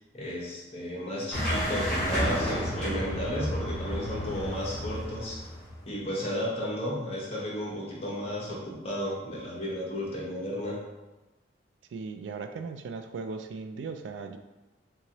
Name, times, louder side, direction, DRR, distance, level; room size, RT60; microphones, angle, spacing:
voice 1, 0.1-5.4 5.8-10.8, equal, 35° left, -5 dB, 1.0 m, -33 dB
sound 1, 1.3-6.0, equal, 5° left, 1.2 m, -31 dB
voice 2, 11.9-14.4, right 4 dB, 80° right, 8 dB, 0.3 m, -37 dB
3.6 x 2.9 x 2.9 m, 1.1 s
head